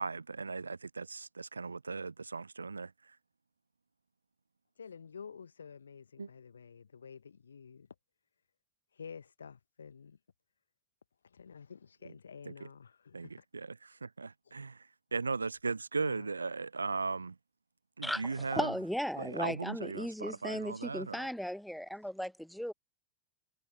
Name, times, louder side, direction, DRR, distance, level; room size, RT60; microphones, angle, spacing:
voice 1, 0.0-3.2 6.2-6.3 12.0-12.2 12.5-12.7 13.1-17.4 18.0-18.8 19.2-21.3, right 4 dB, 75° right, 0.3 m, -38 dB
voice 2, 4.8-7.9 8.9-10.2 11.2-13.4 16.0-16.3, left 6 dB, 70° left, 1.1 m, -50 dB
voice 3, 18.5-22.7, equal, ahead, 1.0 m, -36 dB
figure-of-eight pair, 90°, 0 cm